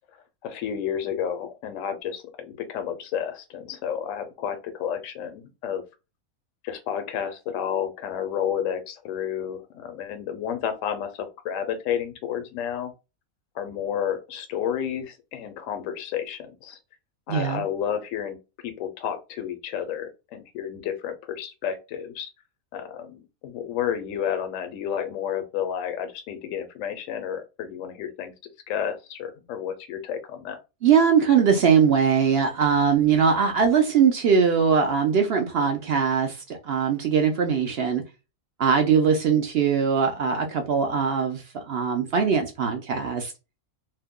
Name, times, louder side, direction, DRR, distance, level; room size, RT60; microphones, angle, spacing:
voice 1, 0.4-5.8 6.6-12.9 13.5-16.8 17.3-18.4 18.6-22.3 22.7-28.3 28.7-30.6, left 9 dB, 70° left, 1.0 m, -31 dB
voice 2, 17.3-17.6 30.8-38.0 38.6-43.3, right 6 dB, 65° right, 0.6 m, -21 dB
2.6 x 2.2 x 3.6 m
omnidirectional pair, 1.5 m